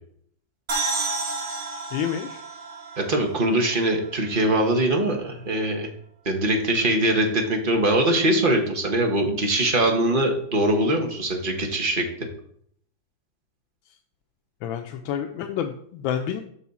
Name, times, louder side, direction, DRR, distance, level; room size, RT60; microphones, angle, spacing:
sound 1, 0.7-4.2, right 3 dB, 45° right, 1.7 m, -31 dB
voice 1, 1.9-2.4 14.6-16.4, left 9 dB, 90° left, 6 dB, 1.3 m, -29 dB
voice 2, 3.0-5.9 6.2-12.0, right 1 dB, 30° right, 3 dB, 1.1 m, -22 dB
7.1 x 6.2 x 4.1 m, 0.64 s
omnidirectional pair, 2.1 m